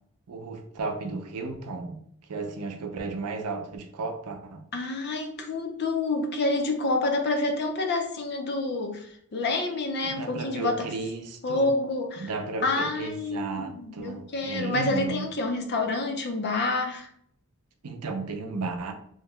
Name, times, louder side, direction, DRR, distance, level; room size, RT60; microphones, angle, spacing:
voice 1, 0.3-2.0 2.3-4.6 10.0-11.7 12.2-15.3 17.8-18.9, right 3 dB, 85° right, 0.5 m, -34 dB
voice 2, 4.7-10.9 11.4-12.3 12.6-17.1, left 2 dB, 50° left, 0.5 m, -28 dB
3.0 x 2.2 x 3.5 m
head